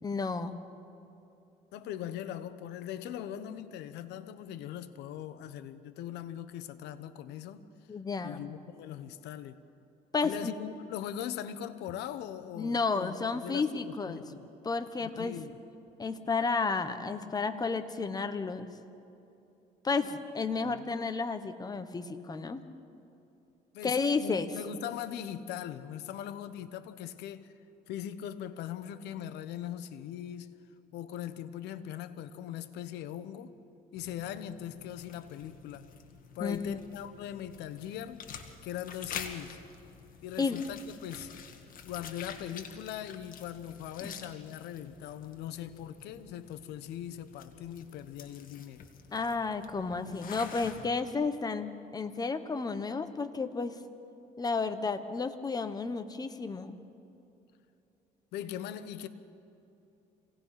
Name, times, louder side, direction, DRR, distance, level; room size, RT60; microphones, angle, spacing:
voice 1, 0.0-0.6 7.9-8.4 10.1-10.5 12.6-14.2 14.6-15.4 16.0-18.7 19.8-22.6 23.8-24.5 36.4-36.8 40.4-40.6 44.0-44.1 49.1-53.8 54.4-56.8, left 4 dB, 25° left, 1.2 m, -32 dB
voice 2, 1.7-7.6 8.2-9.6 10.2-14.5 15.0-15.5 20.6-21.0 23.7-27.5 27.9-30.6 30.9-33.6 33.9-35.9 36.3-38.3 38.6-39.6 40.2-41.4 41.8-48.9 58.3-59.1, left 10 dB, 85° left, 1.1 m, -40 dB
sound 1, 33.9-50.8, left 7 dB, 55° left, 1.8 m, -48 dB
27.0 x 18.0 x 5.8 m
cardioid pair, 110°, 17 cm